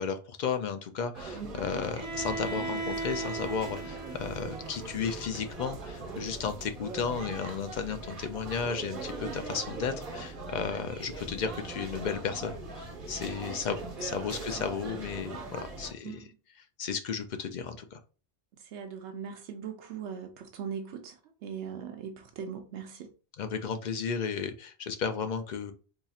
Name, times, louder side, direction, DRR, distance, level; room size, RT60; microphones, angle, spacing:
voice 1, 0.0-16.3 16.8-18.0 23.4-25.7, left 6 dB, 60° left, 0.5 m, -34 dB
sound 1, 1.1-15.9, right 3 dB, 50° right, 1.1 m, -41 dB
Bowed string instrument, 1.9-5.8, right 3 dB, 30° right, 0.6 m, -38 dB
voice 2, 18.6-23.1, right 7 dB, 80° right, 0.9 m, -40 dB
4.0 x 2.9 x 2.4 m
omnidirectional pair, 1.2 m